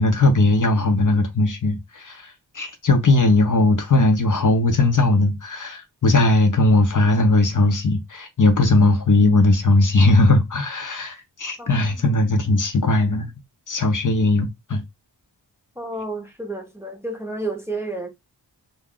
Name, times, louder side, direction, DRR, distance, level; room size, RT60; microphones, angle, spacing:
voice 1, 0.0-13.3 13.7-14.8, left 2 dB, 50° left, 0.6 m, -18 dB
voice 2, 11.6-12.1 15.8-18.1, right 2 dB, 5° right, 0.6 m, -31 dB
2.3 x 2.2 x 3.6 m
wide cardioid pair, 90°, 42 cm